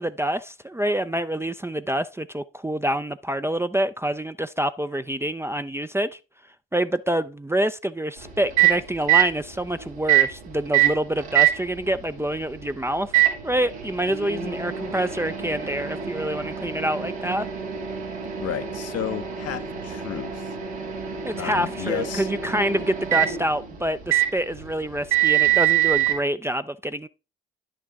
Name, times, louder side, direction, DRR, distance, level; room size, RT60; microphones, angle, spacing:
voice 1, 0.0-6.2 6.7-13.1 13.4-17.5 21.2-27.1, right 1 dB, 10° right, 0.5 m, -26 dB
Microwave oven, 8.2-26.2, right 13 dB, 85° right, 2.4 m, -25 dB
voice 2, 18.4-20.6 21.4-22.3, left 11 dB, 50° left, 0.9 m, -32 dB
10.5 x 6.5 x 3.6 m
hypercardioid pair, 50°, 31 cm